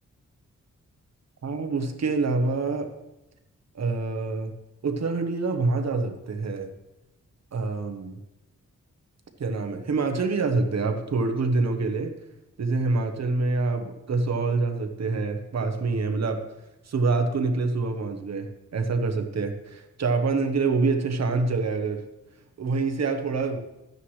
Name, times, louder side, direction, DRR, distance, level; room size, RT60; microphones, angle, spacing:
voice 1, 1.4-2.9 3.7-4.5 4.8-6.7 7.5-8.2 9.4-12.1 12.6-16.4 16.9-22.0 22.6-23.6, right 3 dB, 60° right, 6 dB, 1.1 m, -26 dB
13.0 x 9.2 x 3.2 m, 0.94 s
wide cardioid pair, 150°, 30 cm